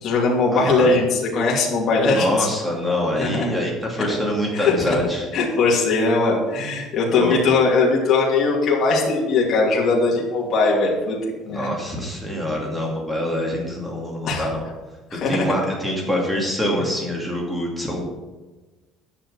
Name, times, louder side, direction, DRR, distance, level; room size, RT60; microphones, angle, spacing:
voice 1, 0.0-2.5 3.1-3.5 4.0-4.1 4.5-5.0 5.3-11.7 14.3-14.5 15.1-15.5, left 3 dB, 35° left, -3 dB, 2.6 m, -20 dB
voice 2, 0.5-0.9 2.0-5.3 7.1-7.4 11.5-14.6 15.3-18.0, left 1 dB, 5° right, -1 dB, 2.4 m, -25 dB
10.0 x 6.7 x 6.5 m, 1.2 s
cardioid pair, 155°, 0 cm